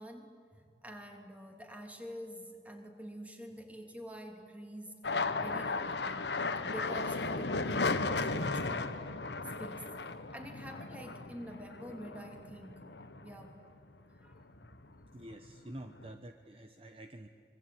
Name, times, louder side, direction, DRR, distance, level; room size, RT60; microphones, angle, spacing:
voice 1, 0.0-5.0 5.4-6.3 6.6-9.0 9.6-10.0 10.3-12.9 13.2-13.6 14.2-14.4, equal, 10° right, 3 dB, 3.0 m, -47 dB
sound 1, 5.0-13.8 14.2-14.9 15.2-16.1, left 3 dB, 80° left, 1.4 m, -35 dB
voice 2, 15.1-17.3, right 1 dB, 30° right, 6 dB, 1.0 m, -48 dB
25.5 x 24.0 x 9.3 m, 2.5 s
head